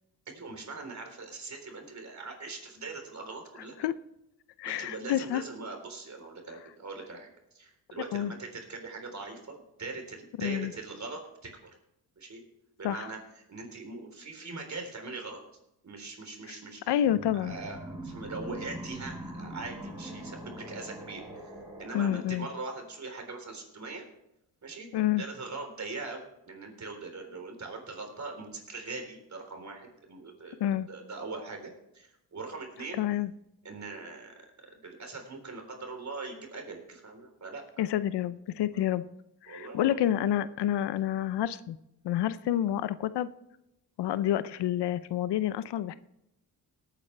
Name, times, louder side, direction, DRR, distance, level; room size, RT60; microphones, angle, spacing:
voice 1, 0.3-3.7 4.6-7.3 7.5-11.7 12.2-12.4 12.8-13.2 13.5-15.4 15.8-16.8 17.3-21.5 21.8-24.1 24.6-24.9 25.2-30.6 30.9-33.0 33.6-34.3 34.8-37.8 38.7-38.8 39.5-40.0, right 3 dB, 45° right, 3 dB, 3.8 m, -41 dB
voice 2, 4.6-5.4 8.1-8.3 10.4-10.7 12.8-13.1 16.5-16.6 16.9-17.6 21.9-22.5 24.9-25.2 30.6-30.9 33.0-33.3 37.8-39.0 39.4-41.8 42.0-43.3 44.0-45.9, left 11 dB, 80° left, 15 dB, 0.7 m, -28 dB
sound 1, 17.1-22.2, right 1 dB, 10° right, 5.5 m, -42 dB
18.5 x 9.1 x 3.3 m, 0.84 s
cardioid pair, 75°, 40 cm